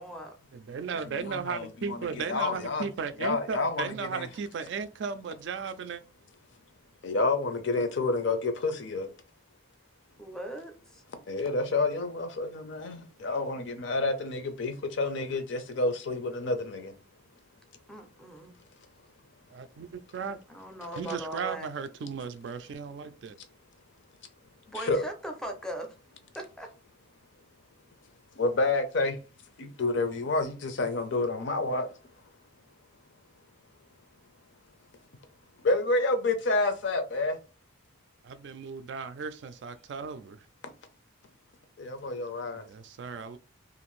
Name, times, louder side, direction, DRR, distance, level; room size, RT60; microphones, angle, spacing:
voice 1, 0.0-0.4 10.2-11.0 17.9-18.5 20.5-21.7 24.7-25.9 26.3-26.7, right 1 dB, 5° left, 0.4 m, -39 dB
voice 2, 0.5-6.0 19.5-20.4 21.0-23.4 38.2-40.5 42.6-43.4, right 5 dB, 60° right, 0.3 m, -36 dB
voice 3, 1.1-2.9 3.2-4.3 7.0-9.1 11.3-16.9 24.7-25.0 28.4-29.2 29.6-31.9 35.6-37.4 41.8-42.6, left 3 dB, 65° left, 0.5 m, -29 dB
2.5 x 2.5 x 3.0 m
head